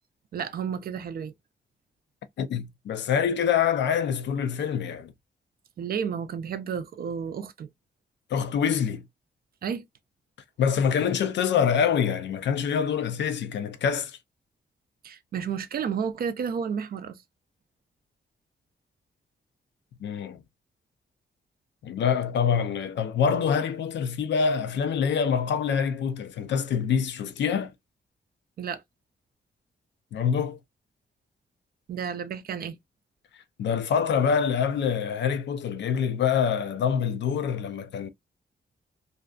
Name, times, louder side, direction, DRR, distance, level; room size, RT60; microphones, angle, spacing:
voice 1, 0.3-1.3 5.8-7.7 9.6-9.9 15.0-17.2 28.6-28.8 31.9-32.8, right 7 dB, 55° right, 0.4 m, -31 dB
voice 2, 2.4-5.1 8.3-9.1 10.6-14.2 20.0-20.4 21.8-27.7 30.1-30.6 33.6-38.1, left 7 dB, 80° left, 0.4 m, -25 dB
2.5 x 2.2 x 2.4 m
wide cardioid pair, 120°, 18 cm